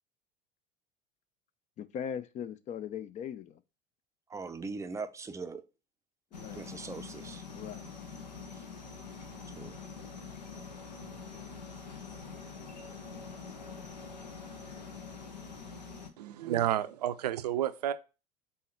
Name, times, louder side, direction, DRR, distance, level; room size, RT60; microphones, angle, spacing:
voice 1, 1.8-3.6 6.3-6.6 7.5-7.8, left 8 dB, 35° left, 0.5 m, -39 dB
voice 2, 4.3-5.6 6.5-7.4 8.5-8.7 9.6-9.8, right 4 dB, 15° right, 0.6 m, -41 dB
sound 1, 6.3-16.1, left 5 dB, 80° left, 0.9 m, -45 dB
voice 3, 16.2-17.9, right 12 dB, 70° right, 0.5 m, -30 dB
5.5 x 4.3 x 4.3 m
figure-of-eight pair, 70°, 21 cm